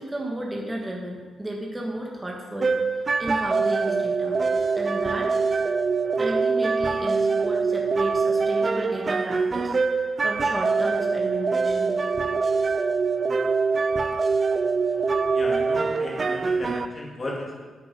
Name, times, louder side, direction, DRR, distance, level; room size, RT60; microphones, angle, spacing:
voice 1, 0.0-2.7 3.2-4.4 4.7-5.3 6.2-12.0, right 1 dB, 15° right, -1 dB, 1.7 m, -33 dB
sound 1, 2.6-16.9, right 4 dB, 40° right, 0.5 m, -24 dB
voice 2, 15.3-17.7, left 1 dB, 35° left, -3 dB, 3.0 m, -35 dB
9.6 x 8.7 x 5.4 m, 1.4 s
cardioid pair, 90°, 0 cm